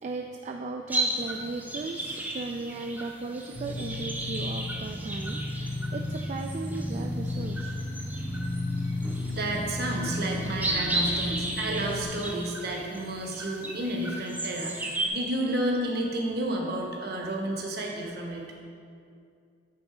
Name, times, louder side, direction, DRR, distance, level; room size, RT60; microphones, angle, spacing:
voice 1, 0.0-7.7, right 3 dB, 35° right, 2 dB, 0.3 m, -36 dB
sound 1, 0.9-15.1, right 1 dB, 10° right, 0.6 m, -35 dB
sound 2, 3.5-12.1, left 1 dB, 30° left, 1.0 m, -33 dB
voice 2, 9.3-18.4, right 1 dB, 55° right, 0 dB, 1.1 m, -31 dB
8.8 x 3.9 x 4.9 m, 2.4 s
head